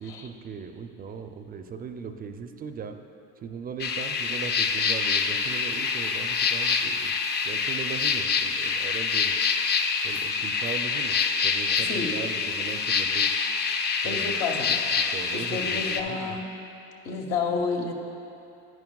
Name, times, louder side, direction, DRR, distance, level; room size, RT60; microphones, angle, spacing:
voice 1, 0.0-3.0 3.4-7.2 7.4-9.4 10.0-11.1 11.4-13.4 14.0-14.4 15.1-16.4, right 6 dB, 30° right, 7 dB, 0.4 m, -38 dB
sound 1, 3.8-16.0, left 5 dB, 35° left, 0.5 m, -26 dB
voice 2, 14.0-16.5 17.0-17.9, left 5 dB, 80° left, 1 dB, 1.1 m, -31 dB
11.0 x 9.2 x 2.3 m, 2.7 s
supercardioid pair, 95°, 30 cm